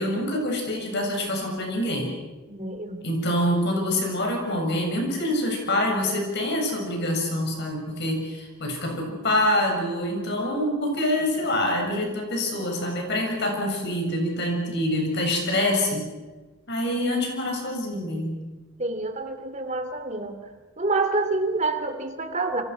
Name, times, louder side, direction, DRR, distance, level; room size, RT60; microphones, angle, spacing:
voice 1, 0.0-2.1 3.0-16.1 16.7-18.4, left 1 dB, 55° left, 2 dB, 7.3 m, -26 dB
voice 2, 2.5-3.0 18.8-20.4 20.8-22.6, right 3 dB, 35° right, 8 dB, 2.6 m, -27 dB
28.0 x 26.0 x 6.2 m, 1.2 s
head